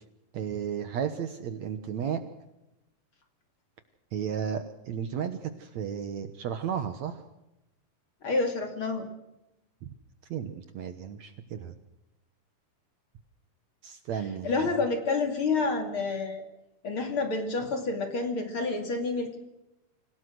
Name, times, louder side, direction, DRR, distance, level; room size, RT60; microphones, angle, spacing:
voice 1, 0.3-2.2 4.1-7.2 9.8-9.9 10.3-11.7 13.8-14.6, right 8 dB, 65° right, 10 dB, 2.1 m, -33 dB
voice 2, 8.2-9.1 14.4-16.4 16.8-19.4, left 3 dB, 40° left, 5 dB, 3.0 m, -29 dB
27.0 x 17.5 x 6.3 m, 0.93 s
omnidirectional pair, 4.0 m